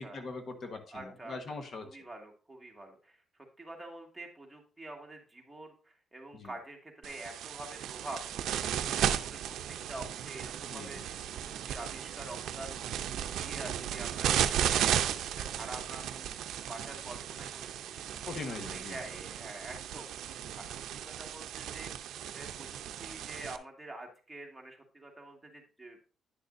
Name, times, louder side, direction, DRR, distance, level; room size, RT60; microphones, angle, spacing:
voice 1, 0.0-1.8 6.3-6.5 10.6-11.0 18.3-19.0, left 3 dB, 50° left, 6 dB, 1.2 m, -41 dB
voice 2, 0.9-1.6 1.8-3.2 3.6-16.3 16.6-18.2 18.7-20.2 20.5-26.0, right 2 dB, 10° right, 1 dB, 1.9 m, -47 dB
sound 1, 7.0-23.6, right 10 dB, 80° right, 0.5 m, -35 dB
9.9 x 6.6 x 2.6 m, 0.36 s
cardioid pair, 90°, 0 cm